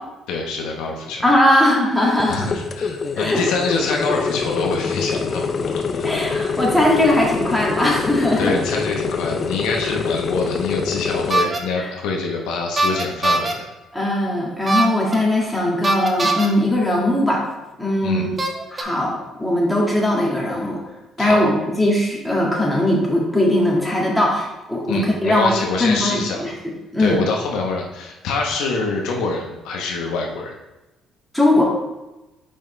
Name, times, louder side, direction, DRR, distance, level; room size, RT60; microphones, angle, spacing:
voice 1, 0.3-1.7 2.3-5.5 5.9-6.1 8.4-13.7 18.0-18.3 21.2-21.5 24.9-26.5 27.0-30.5, left 3 dB, 85° left, 0 dB, 0.9 m, -25 dB
voice 2, 1.2-2.5 3.2-3.4 6.0-8.5 11.8-11.9 13.9-17.4 17.8-18.3 18.7-20.8 21.2-25.5 25.8-27.2 31.3-31.6, left 1 dB, 5° left, -4 dB, 1.8 m, -19 dB
sound 1, 2.2-11.3, left 5 dB, 45° left, 0.5 m, -25 dB
sound 2, 11.3-11.6 12.8-13.5 14.7-15.2 15.8-16.5 17.5-17.6 18.4-18.8, right 2 dB, 30° right, 0.8 m, -20 dB
5.4 x 5.3 x 3.2 m, 1.0 s
cardioid pair, 85°, 0 cm